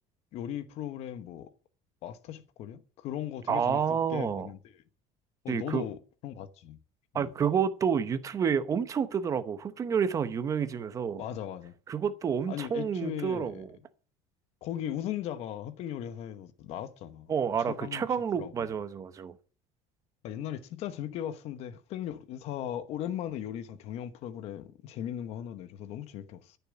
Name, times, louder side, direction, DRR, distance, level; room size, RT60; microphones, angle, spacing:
voice 1, 0.3-1.5 2.0-4.6 5.4-6.8 7.1-7.3 11.2-11.7 12.5-13.6 14.6-17.3 17.7-18.0 18.4-18.5 20.2-26.6, left 10 dB, 50° left, 1.2 m, -38 dB
voice 2, 3.5-4.5 5.5-5.9 7.1-11.2 11.9-13.7 17.3-19.3, right 7 dB, 25° right, 0.9 m, -29 dB
13.5 x 7.1 x 7.2 m
cardioid pair, 175°, 14 cm